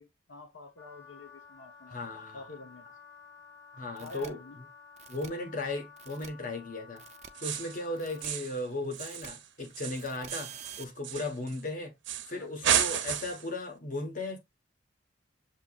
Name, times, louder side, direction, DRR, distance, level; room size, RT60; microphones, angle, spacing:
voice 1, 0.0-2.9 4.0-4.6 5.5-5.6 12.3-12.5, left 2 dB, 80° left, 0.8 m, -48 dB
Wind instrument woodwind instrument, 0.8-8.3, left 5 dB, 15° left, 0.5 m, -53 dB
voice 2, 1.9-2.4 3.7-4.4 5.1-7.0 7.4-11.9 12.3-14.4, left 2 dB, 45° left, 1.1 m, -36 dB
sound 1, 4.0-4.3 5.0-5.3 6.0-6.3 7.0-7.3 8.0-8.3 9.0-9.3 10.0-10.8, right 8 dB, 35° right, 0.4 m, -47 dB
sound 2, 7.3-7.8 8.2-8.6 8.9-11.6 12.0-12.3 12.6-13.5, right 9 dB, 70° right, 0.7 m, -32 dB
6.7 x 2.9 x 2.4 m
head